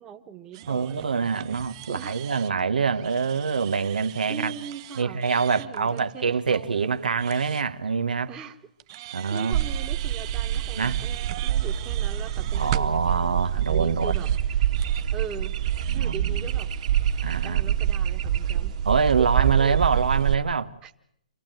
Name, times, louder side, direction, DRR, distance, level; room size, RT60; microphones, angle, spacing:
voice 1, 0.0-1.4 1.9-2.2 4.3-5.2 5.6-6.8 8.3-8.6 8.9-14.7 15.1-15.6 15.9-16.7 17.4-18.7 19.2-19.8 20.8-21.1, right 8 dB, 15° right, 1.5 m, -40 dB
sound 1, 0.5-7.6 8.8-13.0 13.7-13.8 14.0-14.4 14.7-17.5, right 14 dB, 35° right, 0.8 m, -41 dB
voice 2, 0.7-4.5 5.0-8.3 9.1-9.6 10.8-11.0 12.5-14.1 15.9-16.5 17.2-17.7 18.8-20.7, right 5 dB, 85° right, 1.4 m, -25 dB
sound 2, 9.5-20.3, right 10 dB, 50° right, 2.0 m, -26 dB
27.0 x 15.0 x 9.1 m
hypercardioid pair, 150°, 5 cm